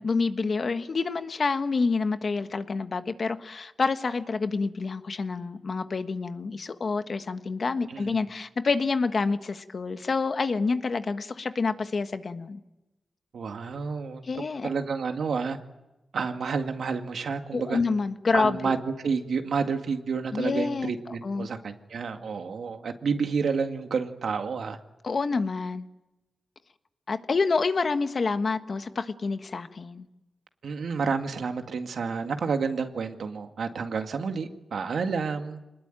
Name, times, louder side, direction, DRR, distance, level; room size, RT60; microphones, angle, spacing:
voice 1, 0.0-12.6 14.2-14.7 17.5-18.7 20.3-20.9 21.2-21.5 25.0-25.8 27.1-30.1, left 4 dB, 60° left, 9 dB, 1.4 m, -28 dB
voice 2, 13.3-15.6 16.1-17.8 18.3-24.8 30.6-35.6, right 5 dB, 85° right, 6 dB, 2.0 m, -30 dB
26.0 x 20.5 x 9.2 m, 0.98 s
cardioid pair, 60°, 0 cm